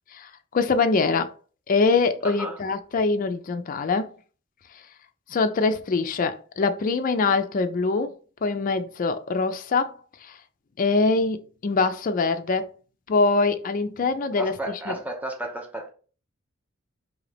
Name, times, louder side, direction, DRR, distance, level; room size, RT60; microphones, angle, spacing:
voice 1, 0.1-1.3 1.7-4.1 5.3-8.1 8.4-9.9 10.2-10.4 10.8-12.7 13.1-14.6 14.9-15.0, left 4 dB, 40° left, 0.4 m, -23 dB
voice 2, 2.2-2.6 14.4-15.9, right 1 dB, 10° right, 0.7 m, -33 dB
3.8 x 2.8 x 3.3 m
head